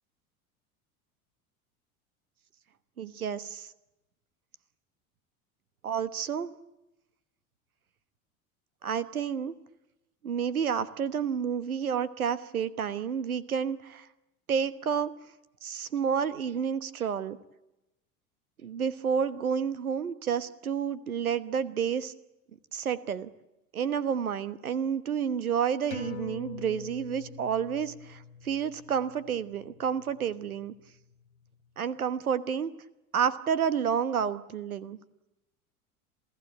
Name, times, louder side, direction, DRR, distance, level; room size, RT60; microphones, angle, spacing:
voice 1, 3.0-3.7 5.8-6.5 8.8-9.5 10.2-14.1 14.5-15.1 15.6-17.4 18.6-22.1 22.7-23.3 23.7-30.7 31.8-32.7 33.1-35.0, right 7 dB, 75° right, 16 dB, 1.3 m, -30 dB
sound 1, 25.9-30.8 31.2-31.3, left 6 dB, 75° left, 3.1 m, -45 dB
27.5 x 16.5 x 8.9 m, 0.92 s
figure-of-eight pair, 75°, 43 cm